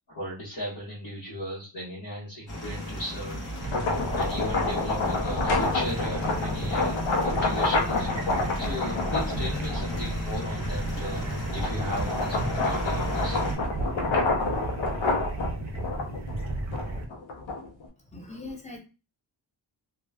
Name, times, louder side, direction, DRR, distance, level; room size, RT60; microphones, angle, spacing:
voice 1, 0.1-3.5 4.1-13.4, equal, 60° left, -8 dB, 1.4 m, -37 dB
sound 1, 2.5-13.6, left 1 dB, 40° left, 0.9 m, -35 dB
sound 2, 3.5-10.1 10.7-17.8, left 3 dB, 85° left, 0.7 m, -29 dB
sound 3, 3.6-17.0, right 2 dB, 40° right, 0.5 m, -34 dB
voice 2, 18.1-18.8, left 2 dB, 15° left, 1 dB, 0.7 m, -40 dB
3.0 x 2.2 x 2.3 m, 0.31 s
cardioid pair, 95°, 45 cm